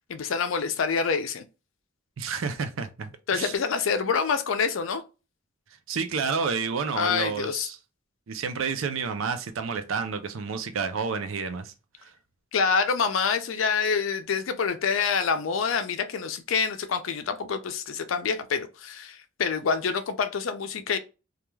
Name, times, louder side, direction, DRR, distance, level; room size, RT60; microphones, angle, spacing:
voice 1, 0.1-1.4 3.3-5.0 6.9-7.7 12.5-21.0, left 5 dB, 75° left, 0.4 m, -26 dB
voice 2, 2.2-3.5 5.9-7.8 8.3-12.1, right 5 dB, 80° right, 0.5 m, -30 dB
2.3 x 2.3 x 3.0 m
head